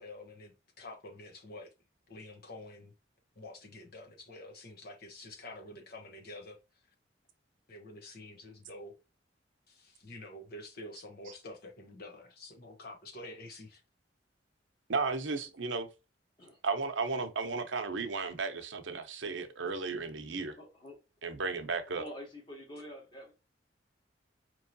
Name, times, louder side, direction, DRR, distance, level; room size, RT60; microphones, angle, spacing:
voice 1, 0.0-1.7 2.1-2.9 3.4-6.6 7.7-9.0 9.7-13.8, left 1 dB, 55° left, 1.1 m, -48 dB
voice 2, 14.9-15.9 16.6-20.6 21.2-22.1, right 4 dB, 85° right, 0.8 m, -34 dB
voice 3, 20.6-21.0 22.0-23.3, equal, 25° left, 1.8 m, -47 dB
4.7 x 3.1 x 2.7 m
head